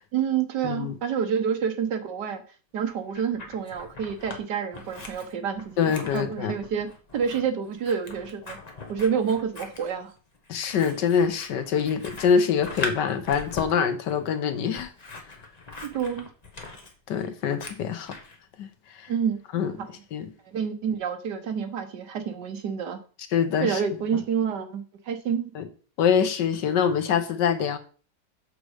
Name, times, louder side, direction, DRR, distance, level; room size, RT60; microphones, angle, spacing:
voice 1, 0.1-2.4 2.7-8.6 8.9-10.1 15.8-16.3 19.1-19.9 20.5-23.0 23.6-25.5, right 7 dB, 75° right, 1.7 m, -28 dB
voice 2, 0.6-0.9 5.8-6.6 10.5-14.9 17.1-18.2 18.6-18.7 19.0-19.1 19.5-19.7 20.1-20.3 23.3-23.8 25.5-25.6 26.0-27.8, left 7 dB, 85° left, 1.6 m, -24 dB
Scissors, 2.9-4.4 4.7-18.4, left 3 dB, 25° left, 1.2 m, -40 dB
6.8 x 6.4 x 4.9 m
omnidirectional pair, 1.8 m